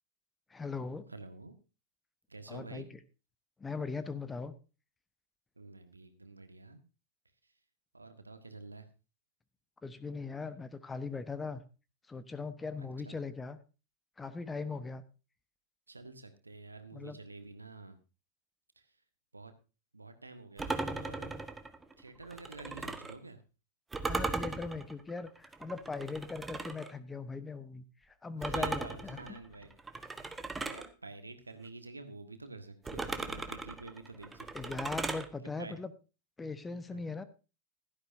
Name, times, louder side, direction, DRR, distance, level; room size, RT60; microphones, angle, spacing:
voice 1, 0.5-1.1 2.5-2.9 3.6-4.5 9.8-11.6 12.1-13.6 14.2-15.0 16.9-17.2 24.0-29.4 30.5-30.7 34.5-35.9 36.4-37.2, left 4 dB, 15° left, 13 dB, 1.0 m, -40 dB
voice 2, 1.1-1.5 2.3-2.9 5.6-6.8 7.9-8.9 12.8-13.2 15.9-18.0 19.3-19.5 19.9-21.4 22.0-23.4 28.4-29.7 30.6-34.8 35.6-35.7 36.9-37.1, right 3 dB, 80° right, 9 dB, 1.5 m, -49 dB
sound 1, 20.6-23.2 23.9-26.9 28.4-30.9 32.9-35.3, right 3 dB, 10° right, 1.2 m, -38 dB
16.0 x 12.5 x 2.7 m, 0.31 s
figure-of-eight pair, 90°, 0 cm